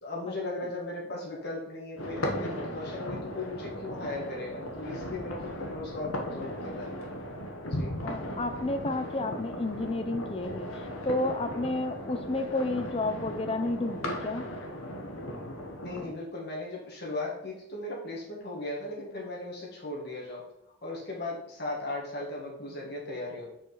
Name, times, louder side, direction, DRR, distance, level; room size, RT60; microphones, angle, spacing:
voice 1, 0.0-7.0 7.6-7.9 15.8-20.4 20.8-23.5, left 2 dB, 50° left, -3 dB, 1.7 m, -37 dB
sound 1, 2.0-16.1, equal, 90° left, 1.0 m, -37 dB
voice 2, 8.0-14.5, left 2 dB, 30° left, 7 dB, 0.5 m, -31 dB
5.0 x 4.8 x 4.0 m, 0.79 s
head